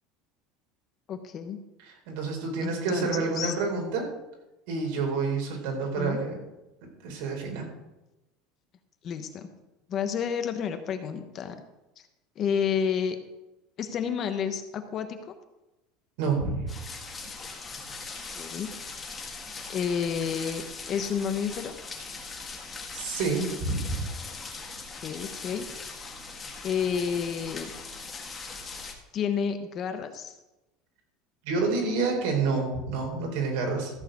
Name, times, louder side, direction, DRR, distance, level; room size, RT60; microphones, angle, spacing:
voice 1, 1.1-1.6 2.6-3.5 6.0-6.2 9.0-9.5 9.9-11.6 12.4-13.2 13.8-15.3 18.3-18.7 19.7-21.7 24.9-25.7 26.6-27.7 29.1-30.3, left 7 dB, 35° left, 8 dB, 1.1 m, -30 dB
voice 2, 1.9-4.1 4.7-6.4 6.8-7.6 16.2-16.6 22.9-23.8 31.4-33.9, right 4 dB, 70° right, 1 dB, 4.3 m, -28 dB
sound 1, 16.7-28.9, left 4 dB, 15° left, 1.8 m, -40 dB
14.5 x 4.8 x 7.8 m, 0.99 s
cardioid pair, 155°, 0 cm